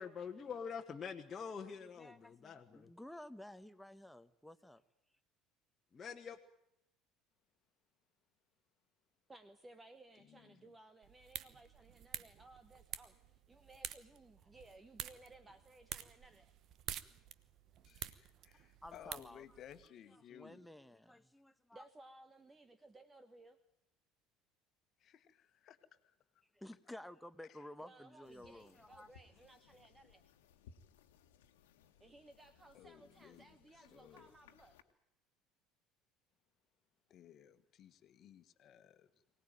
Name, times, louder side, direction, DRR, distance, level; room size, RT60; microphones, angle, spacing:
voice 1, 0.0-2.9 5.9-6.4, left 6 dB, 30° left, 2 dB, 1.5 m, -45 dB
voice 2, 1.4-4.8 18.8-19.4 20.1-21.9 26.5-29.1, left 1 dB, 5° left, 10 dB, 1.3 m, -53 dB
voice 3, 9.3-16.5 21.7-23.6 27.8-30.2 32.0-34.8, right 2 dB, 20° right, 12 dB, 1.3 m, -60 dB
voice 4, 10.2-10.7 17.8-20.6 25.0-26.1 32.7-33.5 33.7-34.3 37.1-39.1, left 10 dB, 50° left, 10 dB, 1.6 m, -58 dB
sound 1, 11.0-19.9, right 11 dB, 50° right, 1.1 m, -49 dB
sound 2, 28.2-34.8, left 7 dB, 75° left, 1.6 m, -65 dB
23.5 x 18.5 x 9.1 m, 0.79 s
hypercardioid pair, 65°, 0 cm